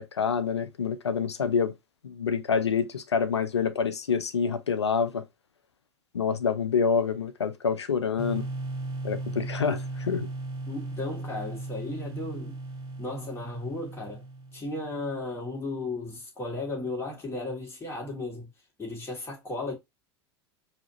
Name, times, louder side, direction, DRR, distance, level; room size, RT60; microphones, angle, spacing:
voice 1, 0.0-1.7 2.0-5.2 6.1-8.5 9.0-10.3, left 6 dB, 85° left, 0.5 m, -27 dB
sound 1, 8.2-15.0, right 2 dB, 30° right, 1.3 m, -37 dB
voice 2, 10.7-12.6 13.0-14.2 14.5-18.5 18.8-19.7, left 2 dB, 15° left, 2.5 m, -35 dB
4.8 x 2.8 x 2.8 m
figure-of-eight pair, 80°, 14 cm